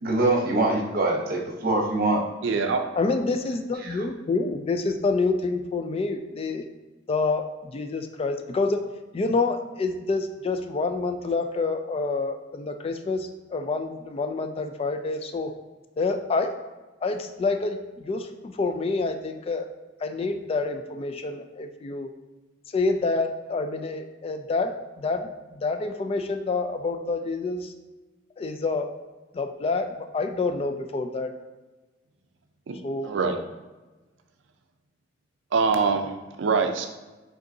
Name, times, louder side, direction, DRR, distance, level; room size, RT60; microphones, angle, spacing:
voice 1, 0.0-2.2 3.8-4.1, right 2 dB, 50° right, 0 dB, 0.9 m, -24 dB
voice 2, 2.4-2.8 32.7-32.8 33.0-33.4 35.5-36.1 36.4-36.9, right 5 dB, 75° right, 6 dB, 0.4 m, -23 dB
voice 3, 3.0-6.6 7.1-8.8 9.1-15.5 16.0-16.5 17.0-19.7 20.0-22.1 22.7-27.7 28.4-28.9 29.3-31.3 32.8-33.1, left 3 dB, 30° left, 7 dB, 0.3 m, -27 dB
5.0 x 3.8 x 2.7 m, 1.2 s
head